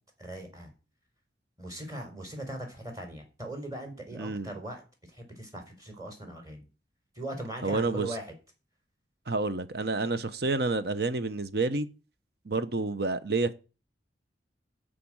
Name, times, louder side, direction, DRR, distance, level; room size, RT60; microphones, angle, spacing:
voice 1, 0.2-0.7 1.6-4.8 5.1-6.7 7.2-8.3, right 1 dB, 20° right, 4.3 m, -39 dB
voice 2, 4.1-4.5 7.6-8.1 9.3-11.9 12.5-13.5, right 3 dB, 60° right, 0.9 m, -29 dB
13.5 x 5.2 x 8.8 m
head